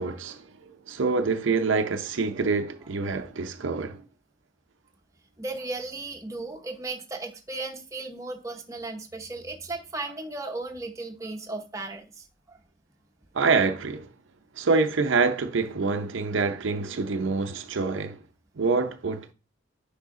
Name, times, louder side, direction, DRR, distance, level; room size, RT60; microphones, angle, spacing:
voice 1, 0.0-4.0 13.3-14.1 14.6-18.2 18.6-19.3, right 4 dB, 70° right, 0.6 m, -26 dB
voice 2, 5.4-12.1 12.5-12.6, right 2 dB, 15° right, 0.8 m, -35 dB
9.6 x 3.4 x 3.7 m
head